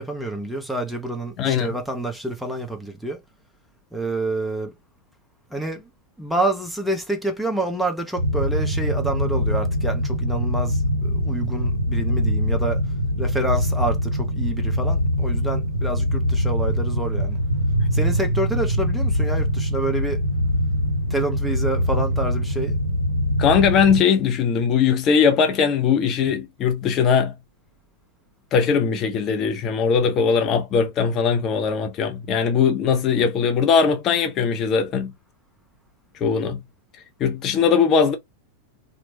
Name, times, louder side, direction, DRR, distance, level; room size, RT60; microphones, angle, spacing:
voice 1, 0.0-3.2 3.9-4.7 5.5-5.9 6.2-12.8 13.2-17.4 17.9-20.2 21.1-22.7, right 2 dB, ahead, 0.7 m, -28 dB
voice 2, 1.4-1.7 23.4-27.3 28.5-35.1 36.2-36.6 37.2-38.2, left 6 dB, 30° left, 0.4 m, -20 dB
sound 1, 8.2-24.0, equal, 90° right, 0.5 m, -23 dB
2.9 x 2.0 x 2.8 m
figure-of-eight pair, 90°, 0 cm